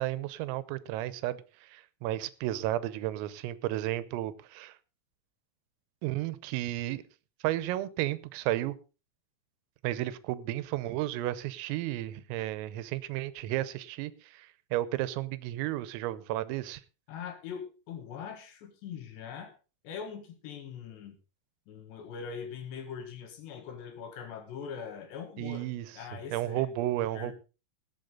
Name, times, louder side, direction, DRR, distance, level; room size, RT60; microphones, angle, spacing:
voice 1, 0.0-4.8 6.0-7.0 7.4-8.8 9.8-16.8 25.4-25.9 26.3-27.3, right 15 dB, 90° right, 3.5 m, -33 dB
voice 2, 17.1-19.5 19.8-21.2 21.7-25.7 25.9-26.7 27.1-27.3, left 7 dB, 65° left, 3.6 m, -42 dB
18.5 x 8.5 x 3.9 m
omnidirectional pair, 5.9 m